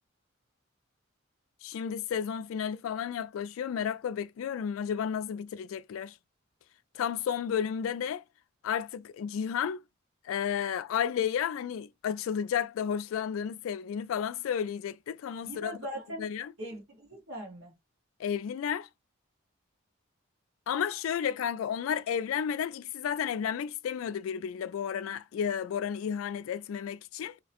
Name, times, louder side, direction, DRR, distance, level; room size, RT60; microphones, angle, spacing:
voice 1, 1.6-6.1 6.9-8.2 8.6-9.8 10.2-15.8 16.2-16.5 18.2-18.9 20.7-27.4, left 8 dB, 85° left, 0.3 m, -32 dB
voice 2, 15.4-16.3 16.6-17.7, right 1 dB, 75° right, 1.2 m, -40 dB
2.7 x 2.0 x 2.8 m
head